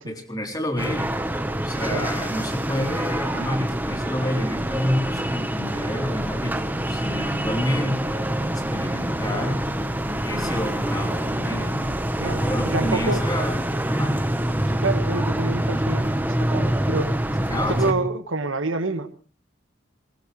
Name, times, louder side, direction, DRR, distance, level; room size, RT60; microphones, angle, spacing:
voice 1, 0.0-1.2 1.6-9.6 10.2-14.2 17.3-18.1, left 1 dB, 20° left, 2 dB, 3.5 m, -29 dB
sound 1, 0.8-17.9, right 1 dB, 10° right, 1.1 m, -26 dB
voice 2, 12.2-13.2 14.8-16.1 16.4-17.1 17.7-19.2, right 3 dB, 85° right, 8 dB, 1.6 m, -27 dB
21.5 x 20.0 x 3.2 m, 0.36 s
head